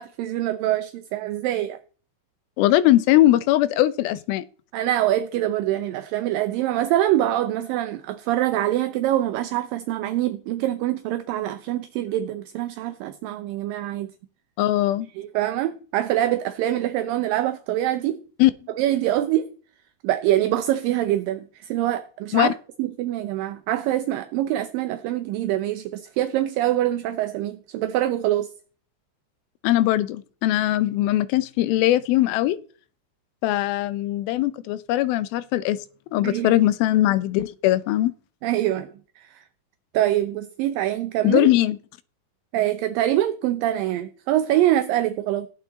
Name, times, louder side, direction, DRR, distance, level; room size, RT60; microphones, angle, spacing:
voice 1, 0.0-1.8 4.7-14.1 15.2-18.2 18.7-19.5 20.0-22.5 22.8-28.5 36.2-36.5 38.4-38.9 39.2-39.4 39.9-41.5 42.5-45.5, right 13 dB, 75° right, 2.4 m, -24 dB
voice 2, 2.6-4.5 14.6-15.1 18.4-18.5 22.3-22.5 29.6-32.6 33.4-35.8 36.1-38.1 41.2-41.8, left 15 dB, 85° left, 2.6 m, -20 dB
17.5 x 8.6 x 4.1 m
omnidirectional pair, 4.3 m